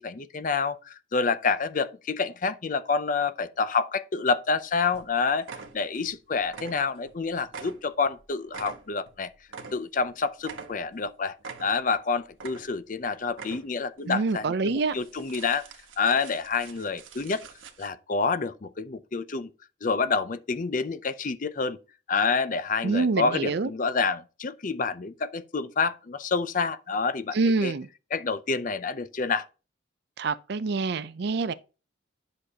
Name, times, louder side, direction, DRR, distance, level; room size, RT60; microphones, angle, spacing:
voice 1, 0.0-5.5 5.7-9.3 9.7-11.3 11.6-15.7 16.0-17.4 17.8-19.5 19.8-21.8 22.1-27.7 28.1-29.5, left 4 dB, 40° left, 0.5 m, -28 dB
sound 1, 4.5-4.6 4.9-5.1 5.4-6.2 6.4-7.2 7.5-10.1 10.4-11.1 11.4-12.0 12.3-13.0 13.3-13.9 14.3-14.4 14.9-17.9, right 5 dB, 90° right, 1.2 m, -44 dB
voice 2, 14.1-15.0 22.8-23.7 27.3-27.9 30.2-31.5, right 4 dB, 55° right, 0.4 m, -26 dB
10.0 x 6.4 x 2.8 m
head